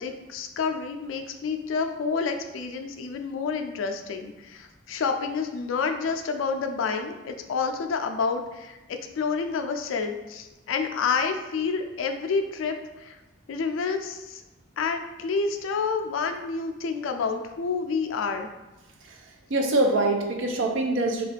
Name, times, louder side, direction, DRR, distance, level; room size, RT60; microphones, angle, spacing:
voice 1, 0.0-13.2 13.5-14.4 14.8-18.5, left 5 dB, 75° left, 6 dB, 0.4 m, -29 dB
voice 2, 19.5-21.3, right 2 dB, 70° right, 3 dB, 0.5 m, -24 dB
3.5 x 2.3 x 3.3 m, 1.1 s
head